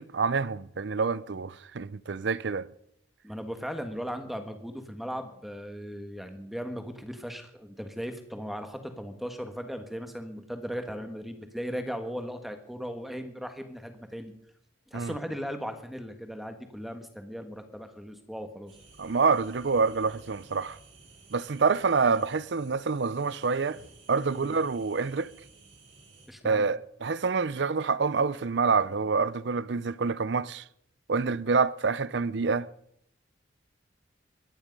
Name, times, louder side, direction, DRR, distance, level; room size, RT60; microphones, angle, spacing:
voice 1, 0.0-2.7 14.9-15.1 19.0-20.8 21.3-23.8 24.1-25.3 26.4-30.6 31.1-32.7, right 4 dB, 60° right, 0.6 m, -27 dB
voice 2, 3.2-14.3 14.9-18.7 24.4-24.5 26.3-26.7, equal, ahead, 1.5 m, -37 dB
sound 1, 18.7-26.3, right 3 dB, 80° right, 6.8 m, -54 dB
22.5 x 10.5 x 5.3 m
head